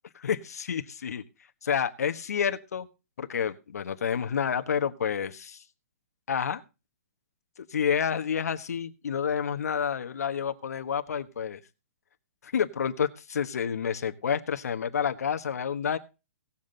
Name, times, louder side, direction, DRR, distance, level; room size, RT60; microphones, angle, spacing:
voice 1, 0.1-1.2 1.6-2.9 3.2-5.6 6.3-6.6 7.6-11.6 12.4-16.0, left 7 dB, 75° left, 1.3 m, -29 dB
18.0 x 7.4 x 4.0 m
hypercardioid pair, 170°, 9 cm